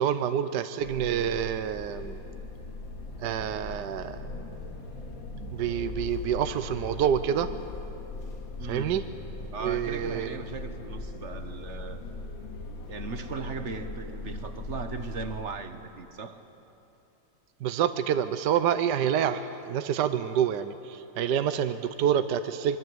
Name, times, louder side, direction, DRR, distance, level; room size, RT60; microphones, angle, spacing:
voice 1, 0.0-2.2 3.2-4.2 5.5-7.5 8.7-9.0 9.6-10.4 17.6-22.8, right 9 dB, 70° right, 10 dB, 1.3 m, -27 dB
sound 1, 0.8-15.4, left 3 dB, 85° left, 2.8 m, -39 dB
voice 2, 8.6-9.0 9.5-12.0 12.9-16.4, right 5 dB, 45° right, 8 dB, 1.3 m, -38 dB
25.0 x 23.5 x 7.9 m, 2.9 s
omnidirectional pair, 2.1 m